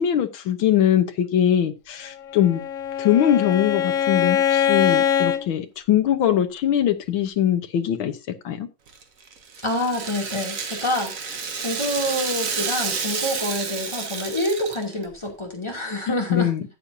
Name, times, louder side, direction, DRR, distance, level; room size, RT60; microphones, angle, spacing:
voice 1, 0.0-2.6 3.0-8.2 8.5-8.7 16.1-16.6, left 10 dB, 90° left, 1.8 m, -21 dB
Bowed string instrument, 2.2-5.4, left 9 dB, 60° left, 0.8 m, -22 dB
Rattle (instrument), 8.9-15.1, right 5 dB, 45° right, 1.5 m, -30 dB
voice 2, 9.6-16.5, left 1 dB, 15° left, 2.7 m, -27 dB
13.0 x 8.5 x 2.7 m
omnidirectional pair, 2.2 m